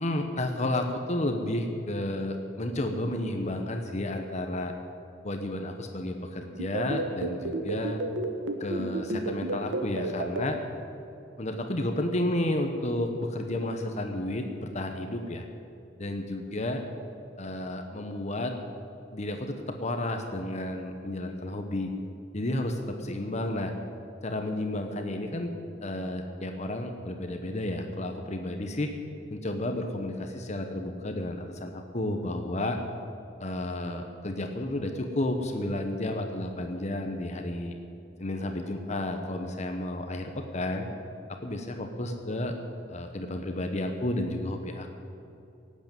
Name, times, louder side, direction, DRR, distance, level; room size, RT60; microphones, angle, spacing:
voice 1, 0.0-4.7 5.2-8.0 8.6-10.6 11.4-15.4 16.0-16.8 17.4-18.5 19.1-21.9 22.3-23.7 24.2-25.5 25.8-28.9 29.3-32.8 33.4-37.8 38.2-40.9 41.3-42.5 42.9-45.0, left 1 dB, 35° left, 5 dB, 1.0 m, -32 dB
sound 1, 6.6-10.4, right 2 dB, 85° right, 1.3 m, -30 dB
17.5 x 8.5 x 9.0 m, 2.7 s
head